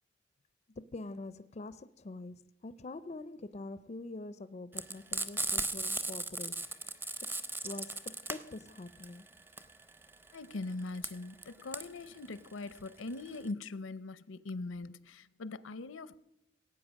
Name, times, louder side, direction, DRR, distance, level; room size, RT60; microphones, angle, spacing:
voice 1, 0.8-6.7 7.6-9.3, left 2 dB, 35° left, 0.4 m, -45 dB
Frying (food), 4.7-13.5, right 2 dB, 10° right, 0.6 m, -37 dB
voice 2, 10.3-16.1, left 3 dB, 85° left, 0.6 m, -41 dB
17.5 x 8.6 x 6.3 m
head